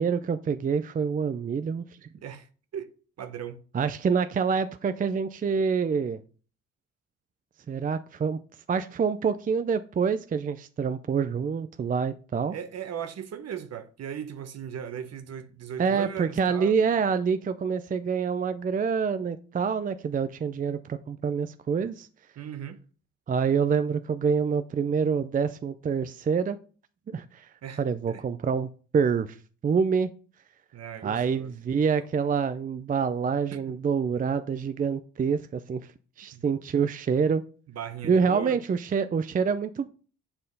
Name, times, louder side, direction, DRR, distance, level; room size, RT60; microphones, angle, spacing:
voice 1, 0.0-2.1 3.7-6.2 7.7-8.4 8.7-12.5 15.8-22.1 23.3-26.6 27.1-27.5 27.8-29.4 29.6-30.1 31.0-35.8 36.2-37.4 38.0-39.9, right 6 dB, 30° right, 0.4 m, -26 dB
voice 2, 3.2-3.6 12.5-16.7 22.4-22.8 27.6-27.8 28.1-28.2 30.7-31.5 33.5-33.8 36.3-36.4 37.7-38.6, right 8 dB, 55° right, 1.0 m, -37 dB
7.6 x 4.4 x 5.3 m
cardioid pair, 90°, 30 cm